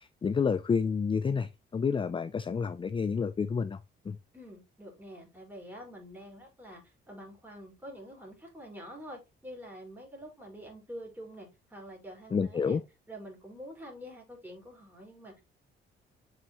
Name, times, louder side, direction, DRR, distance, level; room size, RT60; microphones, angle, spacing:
voice 1, 0.0-4.2 12.3-12.8, left 5 dB, 25° left, 0.5 m, -29 dB
voice 2, 4.3-12.8 13.1-15.4, equal, 10° right, 5.0 m, -47 dB
7.3 x 5.6 x 3.1 m
cardioid pair, 90°, 20 cm